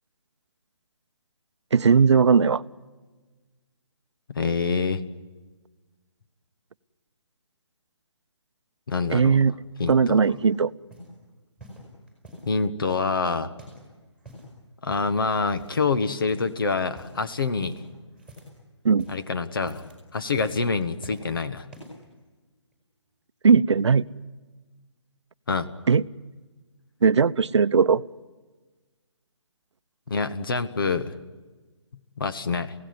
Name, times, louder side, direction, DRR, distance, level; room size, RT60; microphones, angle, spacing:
voice 1, 1.7-2.6 9.1-9.5 9.9-10.7 18.8-19.1 23.4-24.0 25.9-26.0 27.0-28.0, right 5 dB, 70° right, 16 dB, 0.7 m, -18 dB
voice 2, 4.3-5.0 8.9-9.4 9.8-10.2 12.4-13.5 14.8-17.8 19.1-19.8 20.1-21.7 25.5-25.7 30.1-31.1 32.2-32.7, left 4 dB, 50° left, 11 dB, 1.4 m, -26 dB
sound 1, 9.8-10.5 10.9-11.2 11.6-12.5 12.9-13.9 14.1-14.5 14.9-15.2 15.5-16.0 16.3-16.6 16.9-17.2 17.6-18.6 18.9-19.3 19.6-20.0 20.4-21.3 21.7-22.1 22.7-22.8, equal, 5° left, 4.7 m, -46 dB
27.5 x 17.0 x 9.6 m, 1.3 s
hypercardioid pair, 175°, 15 cm